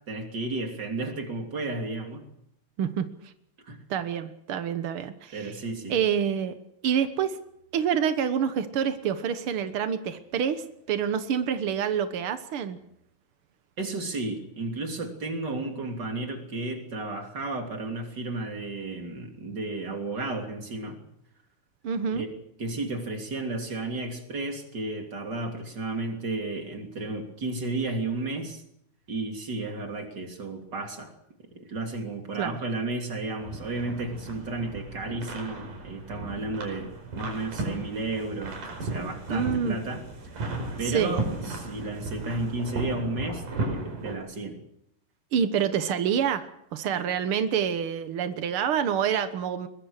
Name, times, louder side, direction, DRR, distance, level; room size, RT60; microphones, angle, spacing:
voice 1, 0.1-2.2 3.7-3.8 5.3-6.0 13.8-21.0 22.1-22.3 22.6-28.6 29.1-31.1 31.5-40.0 40.8-44.6, right 2 dB, 30° right, 3 dB, 3.3 m, -33 dB
voice 2, 3.9-5.5 5.9-6.5 6.8-7.4 7.7-12.8 21.8-22.2 32.4-32.6 39.3-39.8 40.8-41.1 45.3-49.7, right 8 dB, 85° right, 10 dB, 1.2 m, -27 dB
sound 1, 33.4-44.2, right 2 dB, 60° right, 6.3 m, -35 dB
22.5 x 21.5 x 6.5 m, 0.77 s
omnidirectional pair, 4.2 m